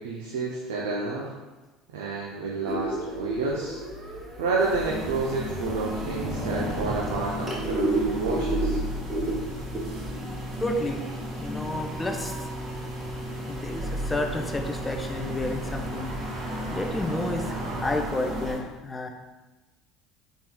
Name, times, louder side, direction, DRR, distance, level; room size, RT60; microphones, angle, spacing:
voice 1, 0.0-1.3 1.9-3.8 4.4-8.8, right 3 dB, 65° right, -4 dB, 0.4 m, -30 dB
sound 1, 2.6-18.0, right 1 dB, 20° right, 0.9 m, -34 dB
sound 2, 4.6-18.6, equal, 45° right, 1.1 m, -34 dB
voice 2, 10.6-11.0 11.4-12.5 13.5-16.2 16.7-19.1, left 1 dB, 15° left, 3 dB, 0.5 m, -31 dB
4.1 x 3.6 x 2.2 m, 1.2 s
figure-of-eight pair, 65°, 0 cm